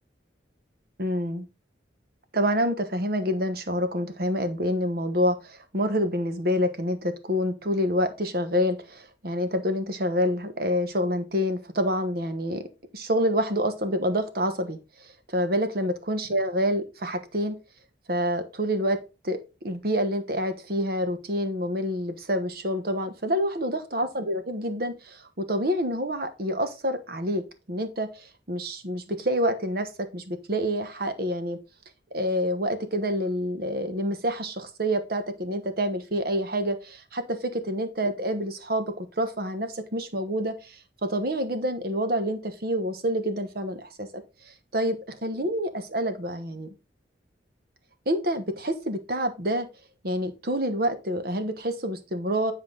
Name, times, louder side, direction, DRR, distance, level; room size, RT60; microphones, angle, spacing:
voice 1, 1.0-1.5 2.3-12.7 12.9-14.8 15.3-17.6 18.1-31.6 32.1-44.1 44.7-46.7 48.1-49.7 50.0-52.5, equal, 50° right, 9 dB, 1.1 m, -27 dB
9.8 x 4.8 x 3.8 m, 0.30 s
head